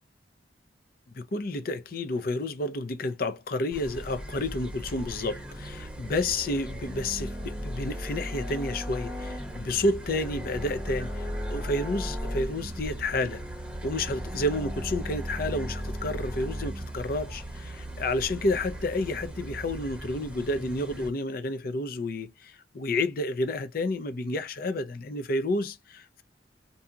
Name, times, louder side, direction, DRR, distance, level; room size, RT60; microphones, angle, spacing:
voice 1, 1.2-13.4 13.8-26.2, left 2 dB, 55° left, 0.5 m, -30 dB
sound 1, 3.7-21.1, equal, 10° right, 1.0 m, -36 dB
2.6 x 2.3 x 2.7 m
head